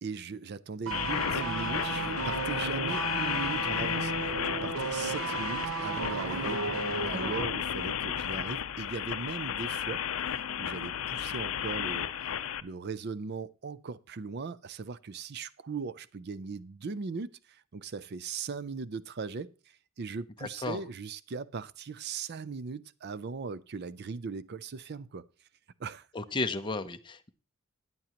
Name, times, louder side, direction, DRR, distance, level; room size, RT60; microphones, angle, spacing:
voice 1, 0.0-6.6 7.1-10.0 10.3-12.1 12.6-25.3 25.8-26.1, right 5 dB, 45° right, 0.4 m, -39 dB
sound 1, 0.9-12.6, left 9 dB, 70° left, 0.5 m, -33 dB
sound 2, 0.9-7.5 7.8-8.0, right 4 dB, 70° right, 1.0 m, -34 dB
voice 2, 20.4-20.8 26.1-27.3, left 3 dB, 20° left, 0.6 m, -33 dB
14.0 x 9.5 x 2.9 m
head